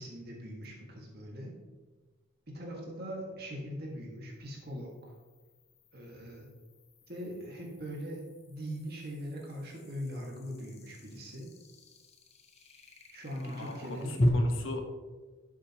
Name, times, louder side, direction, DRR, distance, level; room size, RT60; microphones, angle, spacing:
voice 1, 0.0-1.6 2.5-5.1 5.9-6.5 7.1-11.5 13.1-14.2, equal, 50° right, -1 dB, 1.9 m, -41 dB
sound 1, 0.6-0.7 4.1-14.3, left 1 dB, 30° left, 0.8 m, -39 dB
voice 2, 13.4-14.8, left 3 dB, 70° left, 4 dB, 1.2 m, -41 dB
12.0 x 7.2 x 3.0 m, 1.3 s
head